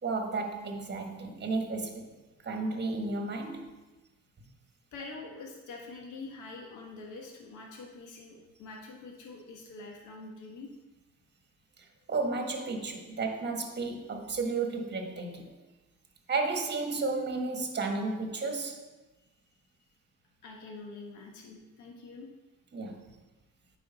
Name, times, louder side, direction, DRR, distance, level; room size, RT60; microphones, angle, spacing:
voice 1, 0.0-2.1 2.4-3.7 12.1-15.6 16.3-18.9 22.7-23.0, right 3 dB, 35° right, 1.3 m, -33 dB
voice 2, 4.9-10.7 20.4-22.3, left 3 dB, 80° left, 1.3 m, -45 dB
8.6 x 4.8 x 4.1 m
cardioid pair, 90°, 30 cm